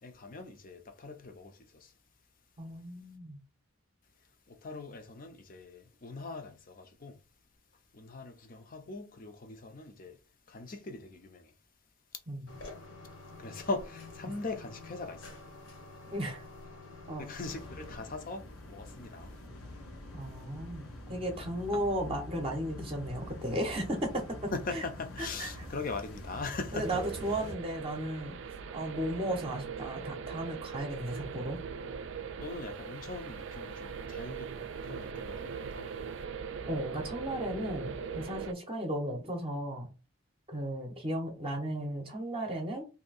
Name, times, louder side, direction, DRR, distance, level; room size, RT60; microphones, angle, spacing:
voice 1, 0.0-1.9 4.5-7.2 7.9-10.2 10.5-11.5 13.4-15.4 17.2-19.3 21.7-21.8 24.5-27.0 32.4-35.9, left 3 dB, 40° left, 0.6 m, -41 dB
voice 2, 2.6-3.4 12.3-12.5 16.1-16.4 17.1-17.3 20.1-20.8 21.1-24.8 25.2-25.7 26.7-28.4 28.7-31.6 36.7-39.9 40.5-42.8, right 1 dB, 25° right, 0.7 m, -35 dB
sound 1, 12.5-18.0, left 3 dB, 60° left, 0.9 m, -48 dB
sound 2, 17.4-27.5, left 1 dB, 90° left, 1.0 m, -46 dB
sound 3, 26.8-38.5, right 6 dB, 55° right, 0.4 m, -40 dB
2.7 x 2.7 x 4.1 m
head